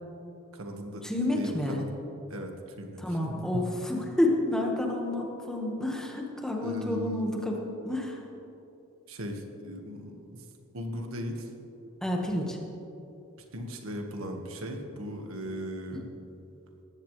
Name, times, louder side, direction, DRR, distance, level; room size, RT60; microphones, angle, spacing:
voice 1, 0.5-1.9 2.3-3.6 6.6-7.3 9.1-10.5 10.7-11.5 13.5-16.1, equal, 90° right, 3 dB, 1.7 m, -38 dB
voice 2, 1.0-1.8 3.0-8.2 12.0-12.6 15.9-16.0, left 1 dB, 5° left, 0 dB, 1.6 m, -29 dB
18.5 x 15.0 x 3.3 m, 3.0 s
head